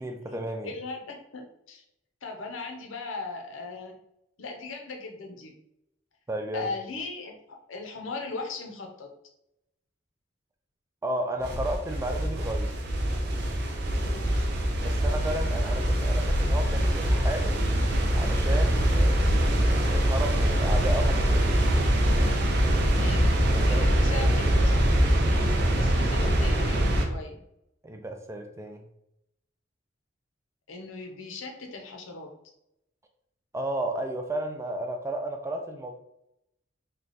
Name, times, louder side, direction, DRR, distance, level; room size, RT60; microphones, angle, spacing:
voice 1, 0.0-0.7 6.3-6.7 11.0-12.7 14.8-17.6 18.1-21.6 23.5-24.2 27.8-28.8 33.5-35.9, right 1 dB, 15° right, 4 dB, 0.3 m, -33 dB
voice 2, 0.6-1.8 2.2-3.9 4.4-5.5 6.5-7.4 7.7-9.1 14.0-14.4 22.8-23.3 23.6-24.9 25.8-27.4 30.7-32.3, left 3 dB, 80° left, 3 dB, 0.7 m, -38 dB
sound 1, 11.4-27.0, equal, 55° right, 0.6 m, -23 dB
3.2 x 2.3 x 3.9 m, 0.81 s
head